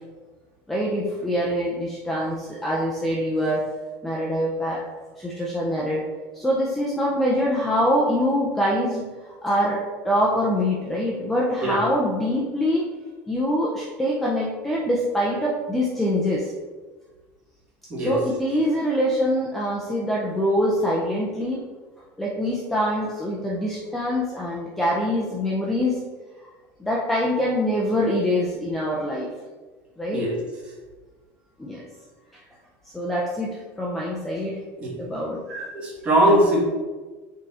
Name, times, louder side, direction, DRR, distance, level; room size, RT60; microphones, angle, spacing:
voice 1, 0.7-3.6 4.0-4.9 5.2-6.0 6.3-9.8 10.0-12.8 13.3-16.4 18.0-21.7 22.2-26.0 26.8-29.3 30.0-30.3 31.6-31.8 32.9-34.6 35.0-35.4, equal, 5° left, -4 dB, 0.5 m, -24 dB
voice 2, 35.5-36.6, right 1 dB, 20° right, -3 dB, 1.4 m, -21 dB
6.6 x 3.7 x 4.1 m, 1.3 s
cardioid pair, 180°, 6 cm